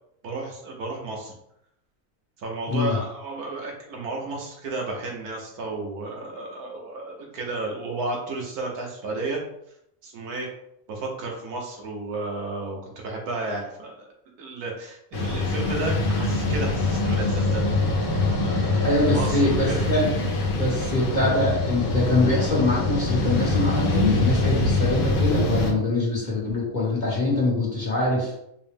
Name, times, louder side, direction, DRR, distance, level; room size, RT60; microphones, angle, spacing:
voice 1, 0.2-1.3 2.4-9.4 10.0-10.5 10.9-14.1 14.4-17.6 18.4-19.9, right 2 dB, 85° right, 0 dB, 1.4 m, -32 dB
sound 1, 15.1-25.7, left 2 dB, 70° left, 1.2 m, -24 dB
voice 2, 18.8-28.4, left 2 dB, 35° left, -5 dB, 1.1 m, -24 dB
4.7 x 2.1 x 3.5 m, 0.76 s
omnidirectional pair, 1.6 m